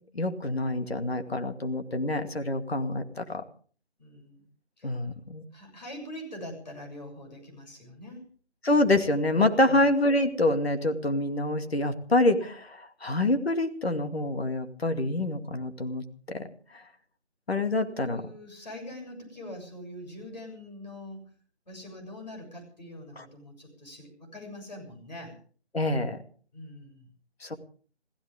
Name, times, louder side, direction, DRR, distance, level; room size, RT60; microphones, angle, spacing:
voice 1, 0.1-3.4 4.8-5.4 8.6-16.5 16.7-16.8 17.5-18.2 23.2-23.3 25.7-26.2 27.4-27.6, left 2 dB, 65° left, 7 dB, 2.4 m, -26 dB
voice 2, 4.0-4.5 4.8-4.9 5.5-8.2 9.7-9.9 17.8-21.3 21.7-25.4 26.5-27.1, left 1 dB, 40° left, 2 dB, 7.3 m, -43 dB
25.5 x 15.5 x 3.6 m, 0.44 s
figure-of-eight pair, 175°, 34 cm